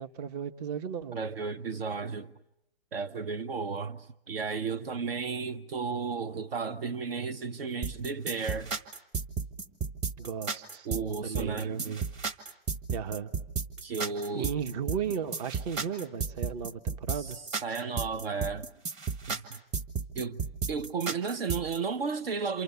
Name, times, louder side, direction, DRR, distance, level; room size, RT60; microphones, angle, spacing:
voice 1, 0.0-1.2 10.2-10.9 11.2-12.0 12.9-13.3 14.3-17.4, right 7 dB, 40° right, 1.2 m, -35 dB
voice 2, 1.1-2.3 2.9-8.7 10.8-12.0 13.8-14.5 17.1-18.7 19.3-19.6 20.1-22.6, right 5 dB, 70° right, 1.2 m, -34 dB
sound 1, 7.8-21.8, right 5 dB, 20° right, 1.5 m, -33 dB
28.5 x 27.0 x 7.0 m
hypercardioid pair, 140°, 31 cm